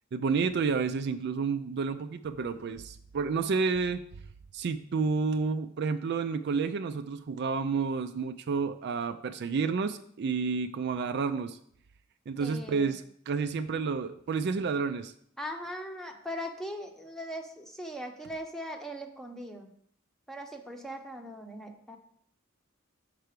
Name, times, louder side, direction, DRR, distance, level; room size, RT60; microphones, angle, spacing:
voice 1, 0.1-4.0 4.5-11.6 12.3-15.1, right 5 dB, 55° right, 9 dB, 0.4 m, -30 dB
voice 2, 12.4-13.0 15.4-19.7 20.3-22.0, equal, ahead, 3 dB, 0.8 m, -40 dB
6.7 x 4.6 x 6.6 m, 0.65 s
head